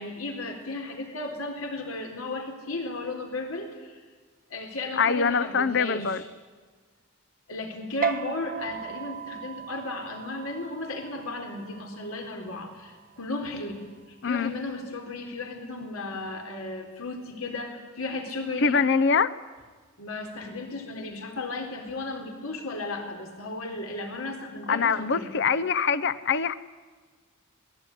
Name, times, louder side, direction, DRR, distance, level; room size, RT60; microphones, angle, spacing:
voice 1, 0.0-4.0 4.5-6.3 7.5-18.8 20.0-25.3, left 2 dB, 85° left, 4 dB, 3.9 m, -35 dB
voice 2, 5.0-6.2 14.2-14.5 18.6-19.4 24.7-26.6, left 5 dB, 60° left, 15 dB, 0.8 m, -24 dB
sound 1, 8.0-14.8, right 7 dB, 40° right, 0.7 m, -37 dB
27.5 x 20.0 x 10.0 m, 1.5 s
head